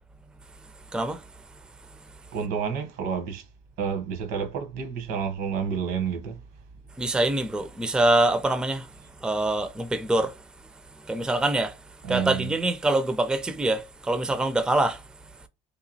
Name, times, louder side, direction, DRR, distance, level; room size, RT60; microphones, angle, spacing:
voice 1, 2.3-3.4 3.8-6.4 12.0-12.5, right 7 dB, 75° right, 1.0 m, -29 dB
voice 2, 7.0-8.9 9.2-10.3 11.1-11.7 12.1-15.0, right 2 dB, 5° right, 0.4 m, -24 dB
2.8 x 2.3 x 2.7 m
supercardioid pair, 90°, 16 cm